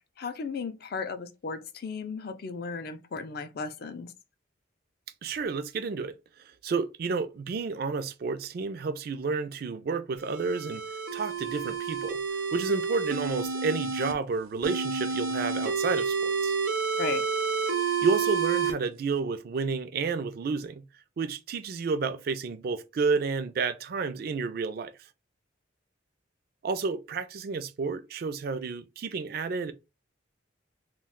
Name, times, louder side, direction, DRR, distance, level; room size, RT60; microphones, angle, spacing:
voice 1, 0.2-4.1 17.0-17.3, left 4 dB, 50° left, 0.4 m, -35 dB
voice 2, 5.2-6.2 6.6-10.8 11.1-12.2 12.5-16.5 17.8-20.8 21.2-24.9 26.6-29.7, right 4 dB, 50° right, 0.3 m, -31 dB
sound 1, 10.2-14.1 14.6-18.7, right 5 dB, 85° right, 0.7 m, -29 dB
2.3 x 2.2 x 3.5 m
head